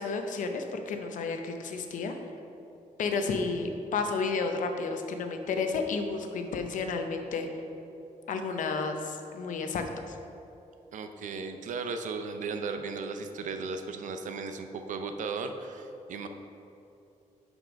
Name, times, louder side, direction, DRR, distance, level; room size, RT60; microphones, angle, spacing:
voice 1, 0.0-2.2 3.0-7.5 8.3-10.2, left 4 dB, 70° left, 5 dB, 0.7 m, -31 dB
voice 2, 10.9-16.3, right 4 dB, 70° right, 7 dB, 0.6 m, -36 dB
5.9 x 5.3 x 5.2 m, 2.8 s
wide cardioid pair, 150°, 14 cm